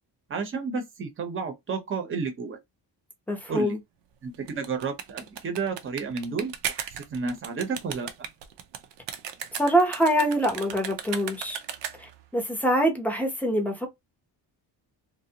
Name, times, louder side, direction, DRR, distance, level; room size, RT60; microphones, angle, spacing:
voice 1, 0.3-2.6 3.5-3.8 4.2-8.1, right 5 dB, 30° right, 0.7 m, -31 dB
voice 2, 3.3-3.8 9.6-11.6 12.0-13.9, equal, 5° left, 0.7 m, -24 dB
sound 1, 4.3-12.2, right 9 dB, 85° right, 0.6 m, -36 dB
2.5 x 2.0 x 2.7 m
cardioid pair, 130°, 42 cm